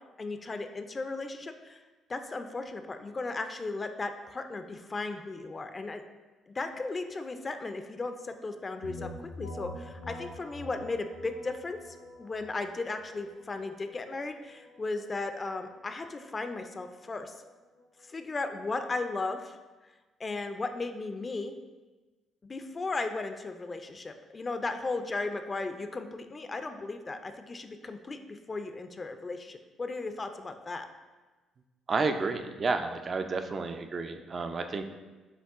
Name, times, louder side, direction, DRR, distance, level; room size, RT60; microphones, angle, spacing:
voice 1, 0.2-1.8 2.1-6.0 6.5-9.1 9.4-17.4 18.1-19.6 20.2-21.5 22.4-30.9, left 3 dB, 35° left, 7 dB, 0.4 m, -36 dB
sound 1, 8.8-18.4, left 2 dB, 80° left, 0.6 m, -47 dB
voice 2, 31.9-34.8, right 4 dB, 40° right, 7 dB, 0.4 m, -31 dB
6.3 x 2.3 x 3.5 m, 1.2 s
hypercardioid pair, 45°, 0 cm